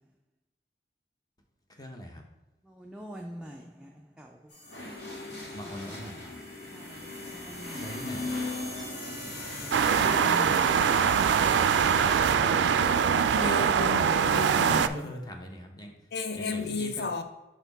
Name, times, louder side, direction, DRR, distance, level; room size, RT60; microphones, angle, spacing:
voice 1, 1.8-2.2 5.5-6.4 7.7-8.4 11.8-12.8 14.7-15.9 16.3-17.1, equal, 20° left, 0.8 m, -41 dB
voice 2, 2.7-4.4 5.6-5.7 6.0-6.1 6.7-7.9 9.8-10.9 14.0-14.9, equal, 5° right, 0.3 m, -43 dB
sound 1, 4.5-12.2, left 2 dB, 80° left, 1.8 m, -38 dB
sound 2, 9.7-14.9, right 7 dB, 85° right, 0.3 m, -23 dB
voice 3, 13.4-15.1 16.1-17.2, left 4 dB, 65° left, 0.6 m, -33 dB
6.0 x 4.2 x 4.0 m
head